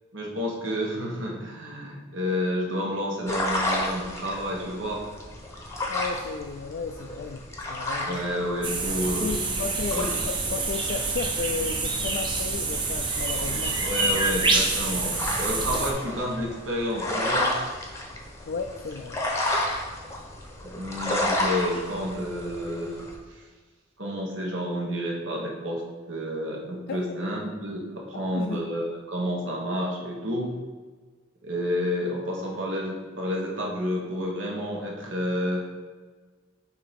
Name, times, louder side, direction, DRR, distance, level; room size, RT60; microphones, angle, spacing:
voice 1, 0.1-5.1 8.0-9.5 9.9-10.1 13.8-17.5 20.6-23.0 23.3-23.4 24.0-25.8 26.1-30.5 31.4-35.7, equal, 70° right, -1 dB, 1.3 m, -30 dB
sound 1, 3.3-23.2, left 1 dB, 15° left, 0.8 m, -33 dB
voice 2, 5.9-8.2 9.0-13.8 18.5-19.2 26.9-27.1 28.3-28.6, left 4 dB, 55° left, 4 dB, 0.3 m, -34 dB
sound 2, 8.6-15.9, right 3 dB, 25° right, 0.6 m, -27 dB
6.8 x 2.8 x 5.1 m, 1.4 s
head